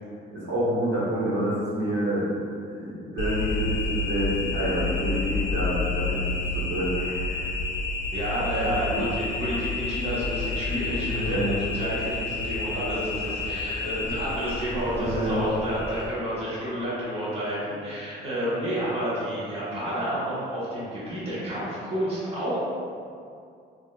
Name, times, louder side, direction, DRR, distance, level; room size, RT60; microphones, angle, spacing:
voice 1, 0.3-2.3 2.6-6.3 6.5-7.4 8.6-9.0 11.0-11.5 14.9-15.4, right 1 dB, 75° right, -10 dB, 1.1 m, -28 dB
sound 1, 3.2-16.1, left 3 dB, 60° left, 0.6 m, -30 dB
voice 2, 8.1-22.7, equal, 30° right, -10 dB, 1.1 m, -30 dB
3.4 x 2.4 x 2.2 m, 2.4 s
cardioid pair, 90°, 20 cm